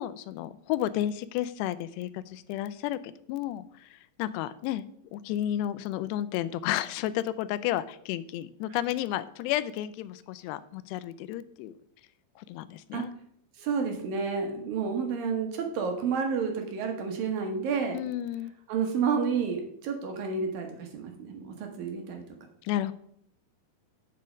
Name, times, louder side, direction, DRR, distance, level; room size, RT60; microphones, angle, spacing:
voice 1, 0.0-4.8 5.1-11.7 12.4-13.1 17.9-18.5 22.6-22.9, left 12 dB, 85° left, 14 dB, 2.7 m, -32 dB
voice 2, 13.6-18.0 18.7-22.2, right 5 dB, 65° right, 3 dB, 2.7 m, -30 dB
8.6 x 7.6 x 5.1 m, 0.67 s
omnidirectional pair, 4.8 m